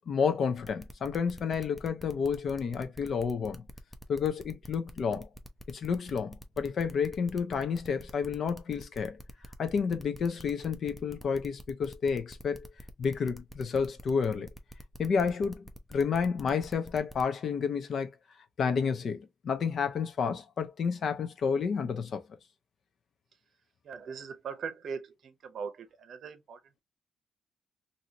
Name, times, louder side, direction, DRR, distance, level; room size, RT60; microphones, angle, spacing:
voice 1, 0.1-3.6 4.1-5.3 5.7-9.2 9.6-12.7 13.0-14.5 15.0-15.6 15.9-18.1 18.6-22.2, left 6 dB, 55° left, 0.7 m, -30 dB
sound 1, 0.6-17.2, equal, 10° left, 0.6 m, -48 dB
voice 2, 23.8-26.8, right 6 dB, 60° right, 0.7 m, -40 dB
2.8 x 2.7 x 2.8 m
cardioid pair, 90°, 0 cm